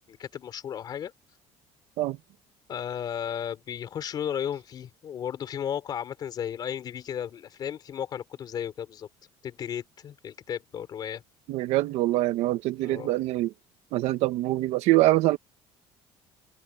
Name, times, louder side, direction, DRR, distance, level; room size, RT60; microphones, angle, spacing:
voice 1, 0.1-1.1 2.7-9.1 9.4-11.2 12.8-13.1, left 9 dB, 40° left, 3.6 m, -34 dB
voice 2, 11.5-13.5 13.9-15.4, right 17 dB, 70° right, 1.5 m, -24 dB
open air
cardioid pair, 165°, 11 cm